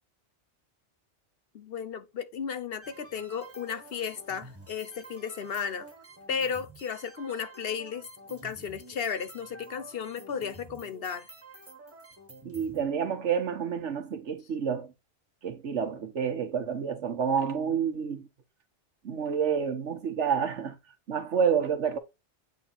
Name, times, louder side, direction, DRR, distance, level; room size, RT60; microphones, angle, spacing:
voice 1, 1.5-5.9 6.3-11.3, left 6 dB, 60° left, 0.9 m, -34 dB
sound 1, 2.8-12.8, right 2 dB, 10° right, 1.4 m, -49 dB
voice 2, 12.4-14.9 15.4-18.3 19.0-20.8 21.1-22.0, right 7 dB, 80° right, 1.4 m, -29 dB
8.3 x 3.4 x 4.2 m
omnidirectional pair, 1.2 m